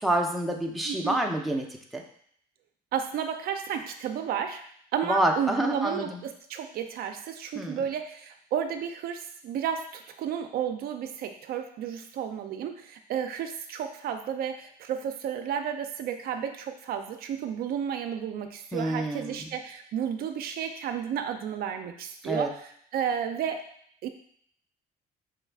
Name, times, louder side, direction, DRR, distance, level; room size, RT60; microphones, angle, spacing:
voice 1, 0.0-1.7 1.9-2.0 5.0-6.2 7.6-7.8 18.7-19.4 22.2-22.5, right 1 dB, ahead, 0 dB, 0.5 m, -27 dB
voice 2, 0.9-1.2 2.9-4.6 4.9-23.6 24.0-24.1, right 8 dB, 65° right, 6 dB, 0.4 m, -32 dB
4.8 x 2.3 x 3.4 m, 0.64 s
cardioid pair, 110°, 17 cm